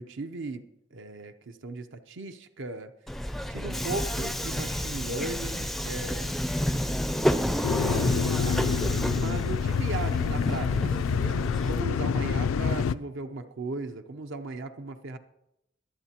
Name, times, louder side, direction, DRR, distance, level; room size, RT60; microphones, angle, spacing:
voice 1, 0.0-2.9 3.5-8.9 9.1-15.2, right 3 dB, 65° right, 8 dB, 0.7 m, -37 dB
Subway metro underground, 3.1-11.8, equal, ahead, 0.4 m, -30 dB
sound 1, 7.6-13.0, left 6 dB, 75° left, 0.4 m, -27 dB
23.0 x 8.1 x 2.9 m, 0.84 s
head